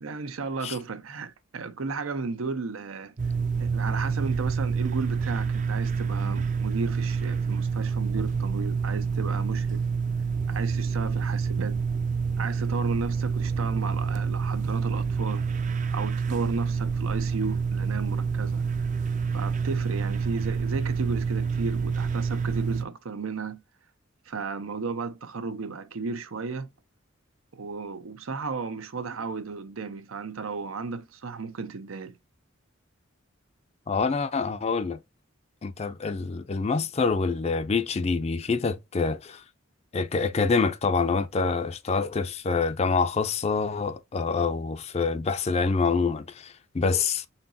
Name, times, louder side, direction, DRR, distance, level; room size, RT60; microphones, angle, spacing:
voice 1, 0.0-3.1 3.6-9.8 10.5-11.8 12.4-15.5 15.9-18.6 19.3-23.6 24.3-26.7 27.5-32.2, right 4 dB, 90° right, 0.7 m, -34 dB
sound 1, 3.2-22.8, right 5 dB, 40° right, 0.4 m, -28 dB
voice 2, 33.9-35.0 35.6-39.4 39.9-47.3, left 4 dB, 30° left, 0.4 m, -26 dB
4.4 x 3.8 x 2.7 m
head